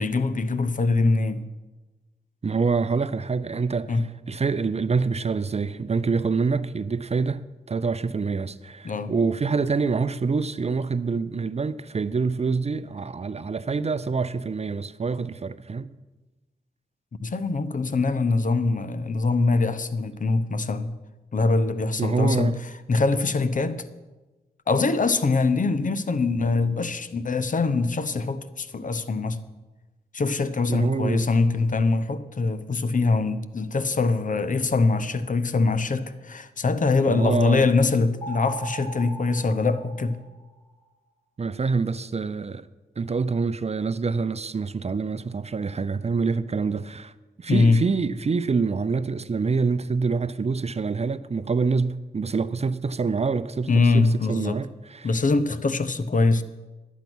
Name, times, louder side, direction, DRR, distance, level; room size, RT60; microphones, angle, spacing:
voice 1, 0.0-1.5 3.9-4.0 8.8-9.1 17.2-21.0 21.3-22.5 22.9-23.8 24.7-29.4 30.1-40.2 47.5-47.8 53.7-54.6 55.0-56.4, left 3 dB, 50° left, 0.9 m, -23 dB
voice 2, 2.4-7.4 7.7-15.9 22.0-22.6 30.7-31.3 37.1-37.7 41.4-42.7 43.0-47.1 47.4-55.1, right 4 dB, 40° right, 0.6 m, -26 dB
sound 1, 38.2-40.7, right 3 dB, 25° left, 2.5 m, -38 dB
12.0 x 8.3 x 6.2 m
cardioid pair, 45°, 17 cm